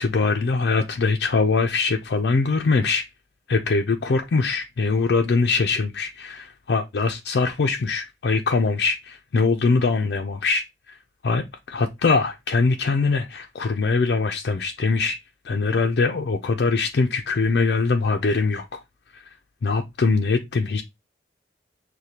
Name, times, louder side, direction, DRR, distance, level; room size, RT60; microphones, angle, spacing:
voice 1, 0.0-3.1 3.5-11.0 11.2-15.2 15.4-18.8 19.2-19.3 19.6-20.8, left 4 dB, 60° left, 0.4 m, -22 dB
6.4 x 2.2 x 2.8 m
head